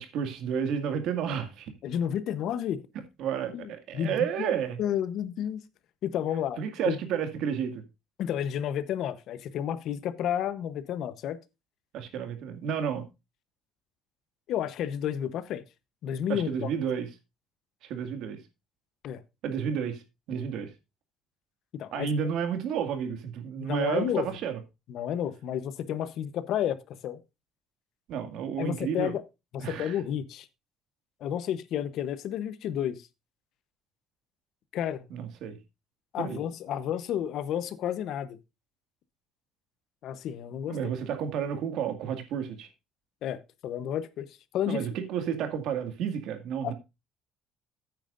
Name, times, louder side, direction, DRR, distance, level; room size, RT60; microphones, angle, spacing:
voice 1, 0.0-1.7 3.2-4.8 6.6-7.8 11.9-13.1 16.3-17.1 17.8-18.4 19.4-20.0 20.3-20.7 21.9-24.6 28.1-29.1 29.6-30.0 35.1-35.6 36.2-36.4 40.7-42.7 44.7-46.7, right 8 dB, 65° right, 2.0 m, -31 dB
voice 2, 1.8-2.8 3.5-4.5 4.8-5.6 6.0-6.6 6.8-7.0 8.2-11.4 14.5-15.6 16.0-16.7 19.0-19.2 21.7-22.1 23.6-24.3 24.9-27.2 28.6-29.2 29.5-30.5 31.2-33.1 34.7-35.0 36.1-38.4 40.0-40.8 43.2-44.8 46.6-46.7, left 10 dB, 55° left, 0.9 m, -31 dB
14.0 x 9.0 x 2.5 m
cardioid pair, 170°, 0 cm